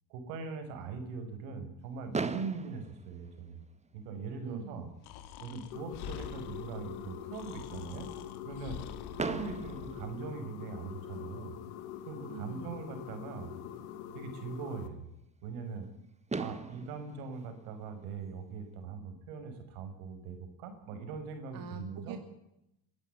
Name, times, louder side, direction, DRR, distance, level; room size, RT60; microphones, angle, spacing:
voice 1, 0.1-3.6 3.9-4.9 5.4-8.1 8.4-8.8 9.2-11.6 12.1-13.5 14.1-15.1 15.4-15.9 16.4-22.2, right 5 dB, 85° right, 7 dB, 6.2 m, -41 dB
Fireworks, 2.1-4.2 5.0-5.1 5.3-5.5 5.8-5.9 9.2-11.0 12.7-12.8 15.8-15.9 16.3-18.6, right 4 dB, 15° right, 1.8 m, -40 dB
voice 2, 4.4-4.9 9.0-9.5 12.3-12.8 21.5-22.2, right 5 dB, 55° right, 5 dB, 3.1 m, -45 dB
Breathing, 5.0-10.1, left 9 dB, 65° left, 2.7 m, -46 dB
sound 1, 5.7-14.9, left 10 dB, 85° left, 2.7 m, -44 dB
23.0 x 14.0 x 9.5 m, 0.82 s
supercardioid pair, 105°, 42 cm